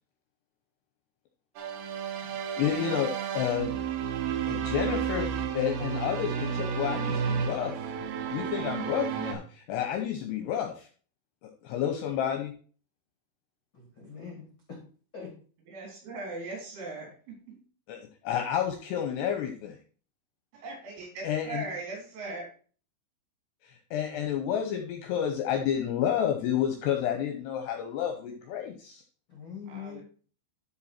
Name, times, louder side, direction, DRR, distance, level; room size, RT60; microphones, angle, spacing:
sound 1, 1.6-9.3, right 7 dB, 85° right, 2.1 m, -32 dB
voice 1, 2.6-3.7 4.5-5.3 5.5-7.7 8.3-10.9 11.4-12.5 17.9-19.8 21.2-21.6 23.6-29.0, left 9 dB, 75° left, 5 dB, 2.5 m, -30 dB
voice 2, 13.7-14.8 15.1-15.3 29.3-30.0, left 6 dB, 60° left, 0 dB, 1.3 m, -43 dB
voice 3, 15.7-17.6 20.5-22.5 29.7-30.0, right 2 dB, 70° right, -1 dB, 5.9 m, -39 dB
12.5 x 4.5 x 4.3 m, 0.40 s
omnidirectional pair, 5.7 m